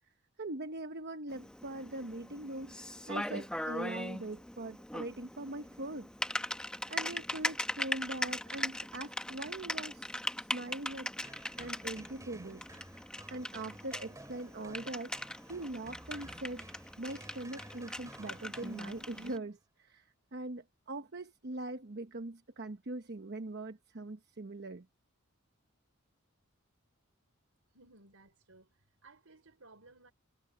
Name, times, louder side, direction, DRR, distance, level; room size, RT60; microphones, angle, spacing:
voice 1, 0.4-6.1 6.9-10.1 10.4-11.1 11.6-12.6 12.9-13.0 13.3-24.9, right 2 dB, 50° right, 1.0 m, -42 dB
Typing, 1.3-19.4, left 1 dB, 5° left, 0.9 m, -40 dB
sound 1, 11.2-19.4, right 1 dB, 15° right, 5.3 m, -54 dB
voice 2, 27.7-28.7 29.0-30.1, right 3 dB, 70° right, 5.3 m, -59 dB
head